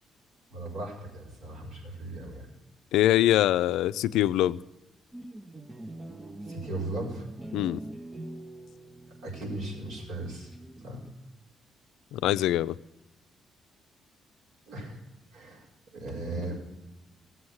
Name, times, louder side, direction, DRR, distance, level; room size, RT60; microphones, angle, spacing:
voice 1, 0.5-2.5 6.4-7.3 9.2-11.0 14.7-15.0 15.3-15.7 15.9-16.6, right 2 dB, 85° right, -2 dB, 5.0 m, -37 dB
voice 2, 2.9-4.6 7.5-7.8 12.1-12.8, left 13 dB, 90° left, 15 dB, 0.4 m, -23 dB
sound 1, 5.1-11.4, right 1 dB, 20° right, 0.7 m, -44 dB
16.0 x 7.8 x 8.0 m, 1.0 s
cardioid pair, 90°, 0 cm